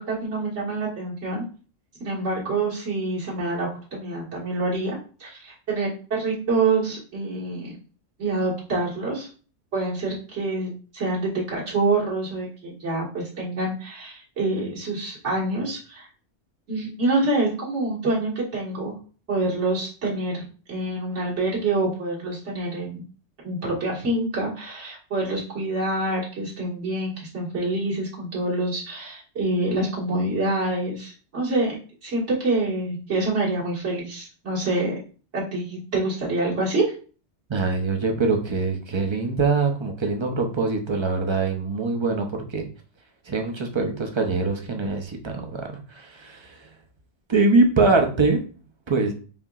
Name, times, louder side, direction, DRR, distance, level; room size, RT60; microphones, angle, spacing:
voice 1, 0.1-1.4 2.0-7.7 8.2-9.3 9.7-16.1 16.7-19.0 19.3-23.1 23.4-31.8 32.0-34.9 35.3-36.9, right 2 dB, 70° right, -6 dB, 2.0 m, -26 dB
voice 2, 37.5-42.7 43.3-46.7 47.3-48.4 48.9-49.1, right 3 dB, 35° right, 3 dB, 0.5 m, -23 dB
5.3 x 2.9 x 2.4 m, 0.39 s
omnidirectional pair, 1.2 m